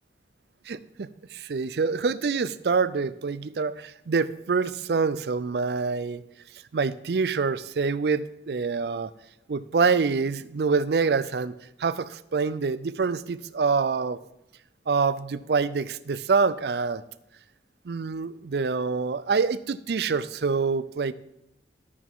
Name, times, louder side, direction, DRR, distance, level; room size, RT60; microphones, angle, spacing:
voice 1, 0.7-6.2 6.7-9.1 9.5-14.2 14.9-17.0 17.8-21.1, right 4 dB, 65° right, 16 dB, 0.5 m, -26 dB
13.0 x 8.4 x 3.7 m, 0.85 s
head